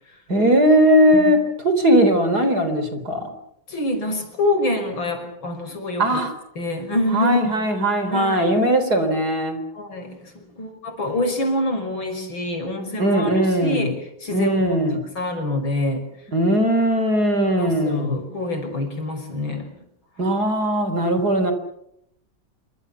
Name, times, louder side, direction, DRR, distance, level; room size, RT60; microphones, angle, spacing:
voice 1, 0.3-1.4 1.6-3.3 6.0-6.3 7.1-9.6 13.0-13.9 14.3-15.0 16.3-18.2 20.2-21.5, right 1 dB, 55° right, 8 dB, 4.4 m, -19 dB
voice 2, 3.7-6.2 6.6-7.6 8.1-8.5 9.7-13.9 14.2-14.9 15.1-16.0 17.6-19.7 21.2-21.3, left 1 dB, 90° left, 6 dB, 6.3 m, -26 dB
27.0 x 24.5 x 7.0 m, 0.76 s
omnidirectional pair, 2.1 m